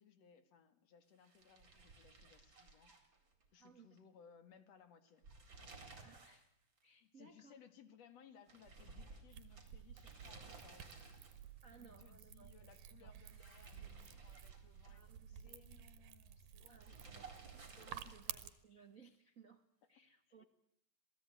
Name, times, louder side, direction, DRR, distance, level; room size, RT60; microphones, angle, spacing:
voice 1, 0.0-2.9 3.5-5.2 7.0-10.9 11.8-17.2 18.0-18.2 20.3-20.5, left 7 dB, 55° left, 10 dB, 3.0 m, -64 dB
sound 1, 1.2-3.7 4.0-4.1 5.1-6.5 6.8-6.9 8.5-11.6 13.2-15.2 16.8-18.5, right 4 dB, 35° right, 4.8 m, -57 dB
voice 2, 3.6-4.0 6.0-6.5 6.8-7.6 11.6-13.1 14.9-15.6 16.7-20.4, right 5 dB, 65° right, 8 dB, 0.7 m, -63 dB
sound 2, 9.3-18.5, right 10 dB, 85° right, 3.0 m, -53 dB
27.5 x 18.0 x 9.2 m, 0.72 s
omnidirectional pair, 3.8 m